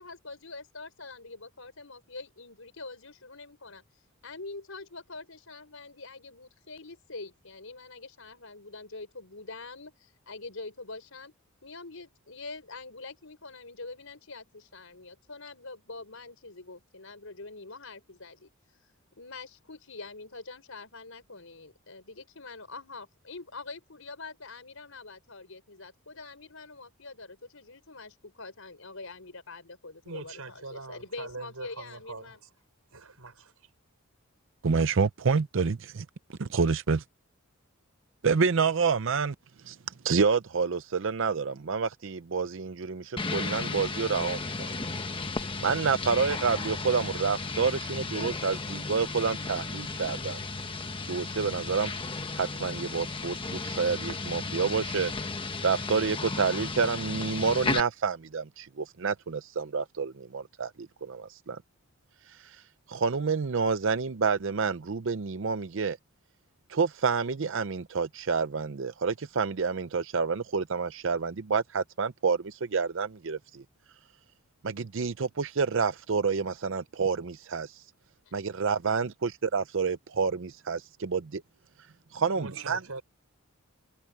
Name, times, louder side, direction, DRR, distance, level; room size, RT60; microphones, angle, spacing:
voice 1, 0.0-3.8 4.2-11.3 11.6-18.5 19.1-32.4 78.2-78.3, left 3 dB, 70° left, 5.2 m, -44 dB
voice 2, 30.0-32.4 32.9-33.5 82.4-83.0, right 3 dB, 85° right, 5.5 m, -42 dB
voice 3, 34.6-37.0 38.2-39.3 39.7-39.8 40.0-44.5 45.6-50.4 51.1-51.9 52.4-55.1 55.6-60.7 61.0-61.6 62.9-66.0 66.7-73.6 74.6-77.7 78.3-81.4 82.1-82.8, right 5 dB, 60° right, 0.6 m, -28 dB
sound 1, 43.2-57.8, left 3 dB, 25° left, 1.3 m, -34 dB
head